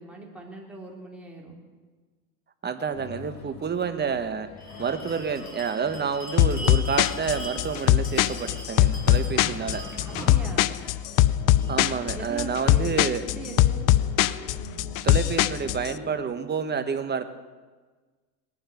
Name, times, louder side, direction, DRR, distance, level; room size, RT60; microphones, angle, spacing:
voice 1, 0.0-1.6 10.1-10.7 12.1-13.8, right 1 dB, ahead, -2 dB, 3.6 m, -41 dB
voice 2, 2.6-4.5 4.8-9.8 11.7-13.2 15.0-17.2, right 6 dB, 20° right, 10 dB, 1.3 m, -29 dB
sound 1, 2.9-16.2, left 3 dB, 75° left, 3.4 m, -44 dB
Bell, 4.6-11.8, right 1 dB, 15° left, 5.5 m, -40 dB
sound 2, 6.4-15.9, left 14 dB, 45° left, 0.6 m, -21 dB
20.0 x 10.5 x 6.5 m, 1.4 s
hypercardioid pair, 100°, 48 cm